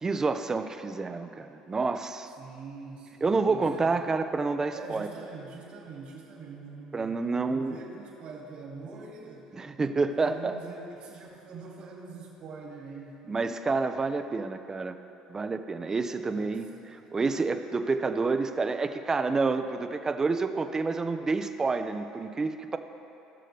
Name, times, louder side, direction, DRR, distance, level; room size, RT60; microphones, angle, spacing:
voice 1, 0.0-2.3 3.2-5.1 6.9-7.8 9.5-10.6 13.3-15.0 15.3-22.8, right 4 dB, 25° right, 9 dB, 0.6 m, -29 dB
voice 2, 2.4-4.0 4.7-7.2 7.5-9.6 10.2-13.2 16.2-17.1, right 4 dB, 60° right, -2 dB, 2.5 m, -44 dB
17.5 x 6.4 x 3.4 m, 2.8 s
supercardioid pair, 80°, 2 cm